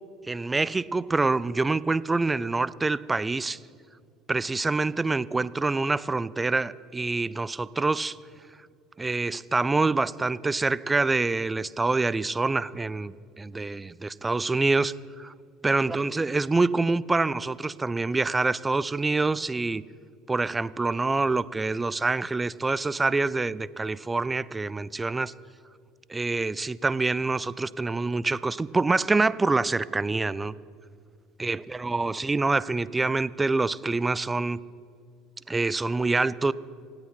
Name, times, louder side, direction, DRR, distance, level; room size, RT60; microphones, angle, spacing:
voice 1, 0.3-3.6 4.3-8.2 9.0-15.3 15.6-19.8 20.3-25.3 26.1-30.5 31.4-34.6 35.5-36.5, right 3 dB, 15° right, 19 dB, 0.4 m, -26 dB
26.0 x 8.9 x 5.7 m, 2.2 s
supercardioid pair, 90°, 0 cm